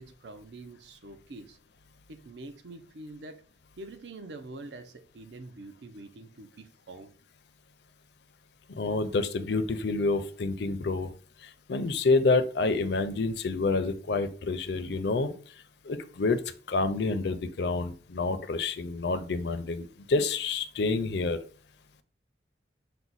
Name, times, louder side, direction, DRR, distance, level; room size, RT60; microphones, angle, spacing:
voice 1, 0.0-1.6 2.1-3.4 3.8-7.1, right 2 dB, 70° right, 8 dB, 0.5 m, -45 dB
voice 2, 8.7-11.1 11.4-15.3 15.8-16.4 16.7-21.4, left 3 dB, 65° left, 10 dB, 0.5 m, -28 dB
5.9 x 2.2 x 4.0 m, 0.42 s
head